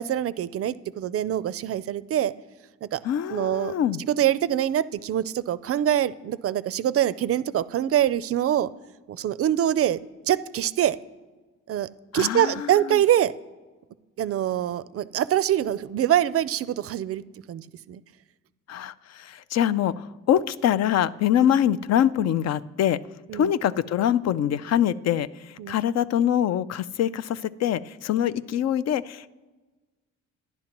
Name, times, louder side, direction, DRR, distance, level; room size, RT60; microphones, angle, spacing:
voice 1, 0.0-2.3 2.8-3.0 3.3-3.7 4.1-8.7 9.1-10.0 10.3-11.0 11.7-11.9 12.1-13.3 14.2-17.2 17.5-18.0 23.3-23.5 25.6-25.8, right 11 dB, 50° right, 17 dB, 0.4 m, -24 dB
voice 2, 3.0-4.0 12.1-13.0 18.7-23.0 23.3-25.3 25.7-29.3, left 10 dB, 60° left, 16 dB, 0.4 m, -24 dB
11.5 x 10.5 x 2.9 m, 1.3 s
cardioid pair, 90°, 30 cm